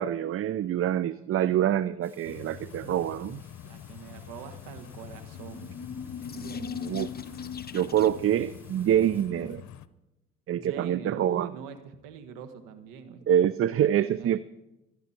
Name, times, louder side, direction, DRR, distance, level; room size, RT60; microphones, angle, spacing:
voice 1, 0.0-3.4 6.8-7.1 7.7-9.6 10.5-11.5 13.3-14.4, right 10 dB, 45° right, 17 dB, 0.5 m, -26 dB
sound 1, 2.0-9.3, left 1 dB, 5° right, 3.2 m, -59 dB
sound 2, 2.2-9.9, left 12 dB, 60° left, 0.8 m, -46 dB
voice 2, 3.6-6.7 10.5-13.2 13.8-14.4, right 7 dB, 80° right, 8 dB, 1.6 m, -43 dB
sound 3, 5.1-8.4, left 6 dB, 30° left, 0.9 m, -38 dB
27.0 x 10.5 x 4.4 m, 0.99 s
supercardioid pair, 60°, 31 cm